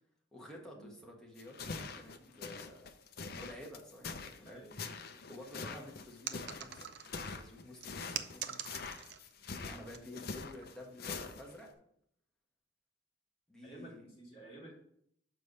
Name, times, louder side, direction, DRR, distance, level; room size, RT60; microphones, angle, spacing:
voice 1, 0.3-2.9 3.3-4.6 5.3-6.9 7.2-8.7 9.6-11.7 13.5-14.1, left 1 dB, 5° left, -2 dB, 1.4 m, -51 dB
sound 1, 1.4-11.7, left 4 dB, 50° left, 0.6 m, -44 dB
voice 2, 1.6-2.3 4.4-4.8 9.6-9.9 13.6-14.8, right 2 dB, 30° left, -5 dB, 2.6 m, -53 dB
sound 2, 6.3-7.3 7.8-9.3 9.7-10.0 10.6-10.9, right 9 dB, 60° right, 0.5 m, -43 dB
6.5 x 4.7 x 5.4 m, 0.70 s
head